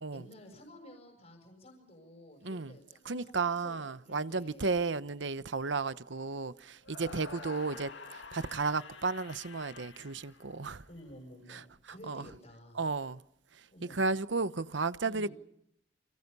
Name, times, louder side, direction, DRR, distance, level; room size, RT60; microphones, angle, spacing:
voice 1, 0.1-4.7 6.9-7.3 10.2-12.8 13.7-14.0 15.0-15.3, equal, 40° left, 6.8 m, -53 dB
voice 2, 2.4-2.7 3.0-10.8 11.5-11.6 12.1-12.2 12.8-13.2 13.9-15.3, right 4 dB, 75° right, 1.0 m, -33 dB
sound 1, 6.8-11.0, left 4 dB, 75° left, 2.1 m, -48 dB
29.5 x 27.5 x 5.5 m
head